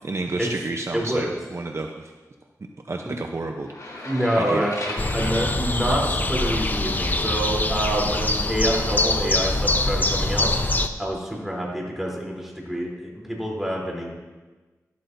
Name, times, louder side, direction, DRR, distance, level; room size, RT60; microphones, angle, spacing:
voice 1, 0.0-2.1 2.9-3.7 4.4-4.7, right 2 dB, 50° right, 3 dB, 0.7 m, -30 dB
voice 2, 0.9-1.3 3.0-3.1 4.0-10.5 11.0-14.1, right 1 dB, 5° right, -3 dB, 3.4 m, -27 dB
Hyacinthe rolling desk chair on tile edited, 3.6-6.7, left 1 dB, 70° left, 2.8 m, -36 dB
sound 1, 5.0-10.9, left 2 dB, 30° left, 0.7 m, -24 dB
13.0 x 12.5 x 2.7 m, 1.2 s
wide cardioid pair, 60°, 6 cm